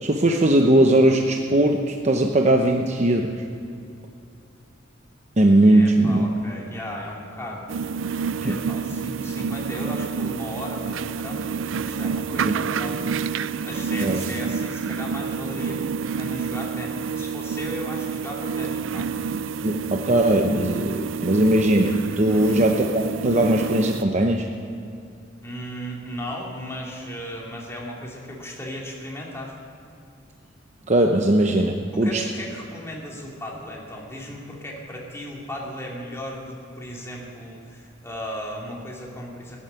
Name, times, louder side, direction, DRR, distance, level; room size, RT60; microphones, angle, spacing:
voice 1, 0.0-3.3 5.4-6.2 8.4-8.6 12.3-12.5 14.0-14.2 19.6-24.5 30.9-32.2, right 1 dB, 35° right, 3 dB, 0.8 m, -19 dB
voice 2, 5.6-7.7 8.4-19.1 22.3-22.6 25.4-29.6 31.9-39.6, equal, 15° left, -3 dB, 2.7 m, -36 dB
sound 1, 7.7-24.0, right 6 dB, 75° right, 0.4 m, -28 dB
15.5 x 11.5 x 7.0 m, 2.6 s
head